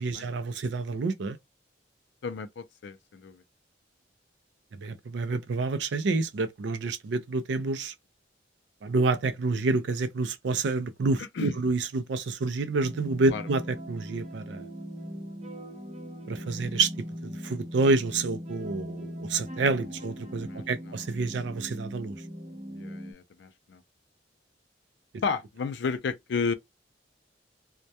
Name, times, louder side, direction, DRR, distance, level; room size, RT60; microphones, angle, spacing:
voice 1, 0.0-1.4 4.7-7.9 8.8-14.6 16.3-16.9 17.4-22.2, right 3 dB, 75° right, 0.4 m, -28 dB
voice 2, 2.2-3.4 11.2-11.6 13.3-13.4 20.5-20.9 22.7-23.8 25.2-26.5, left 5 dB, 70° left, 0.4 m, -33 dB
sound 1, 12.8-23.1, equal, 35° right, 0.7 m, -40 dB
2.2 x 2.1 x 2.7 m
head